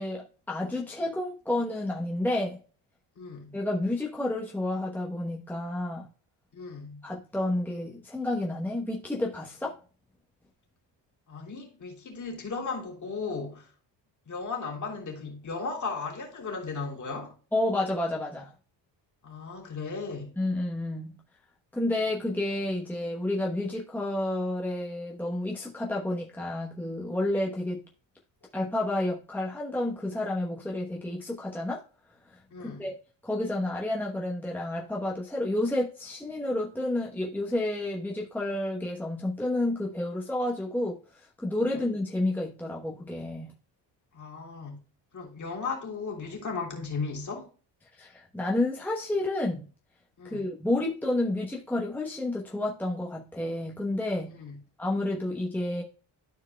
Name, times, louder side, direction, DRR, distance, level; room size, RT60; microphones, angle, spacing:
voice 1, 0.0-2.6 3.5-6.1 7.0-9.8 17.5-18.5 20.4-21.2 21.7-27.8 28.5-31.8 32.3-32.9 33.2-43.5 47.9-49.7 50.2-54.3 54.8-55.8, left 1 dB, 5° left, 0.9 m, -30 dB
voice 2, 3.2-3.6 6.5-7.0 11.3-13.7 14.2-17.3 19.2-20.3 32.5-32.9 41.7-41.8 44.1-44.8 45.1-47.5 50.2-50.5 54.3-54.6, left 4 dB, 40° left, 3.1 m, -36 dB
13.5 x 4.6 x 2.2 m
cardioid pair, 145°, 45 cm